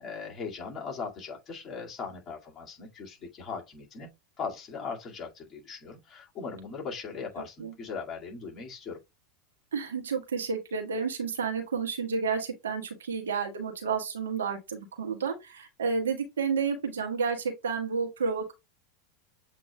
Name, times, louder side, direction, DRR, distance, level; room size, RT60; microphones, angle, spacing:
voice 1, 0.0-4.1 4.4-9.0, left 5 dB, 30° left, 2.1 m, -39 dB
voice 2, 9.7-18.5, right 5 dB, 75° right, 1.3 m, -31 dB
7.6 x 3.0 x 2.3 m
hypercardioid pair, 85°, 0 cm